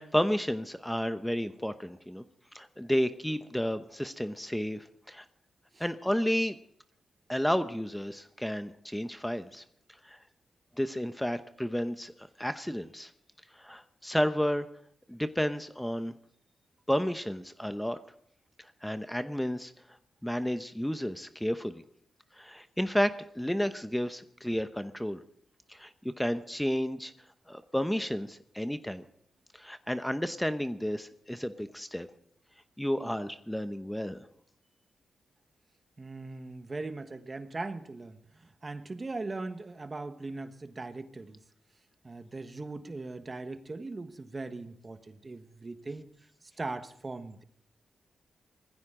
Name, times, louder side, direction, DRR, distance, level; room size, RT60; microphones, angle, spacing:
voice 1, 0.0-2.2 2.5-5.2 5.8-6.6 7.3-9.6 10.0-10.2 10.8-12.1 12.4-13.1 13.5-14.7 15.1-16.1 16.9-18.0 18.6-19.7 20.2-21.8 22.4-25.2 25.7-27.1 27.5-29.0 29.5-32.1 32.8-34.3, equal, 5° left, 10 dB, 0.9 m, -31 dB
voice 2, 36.0-41.4 42.0-46.1 46.6-47.4, right 3 dB, 35° right, 9 dB, 1.4 m, -40 dB
19.5 x 15.0 x 3.8 m, 0.68 s
supercardioid pair, 50°, 0 cm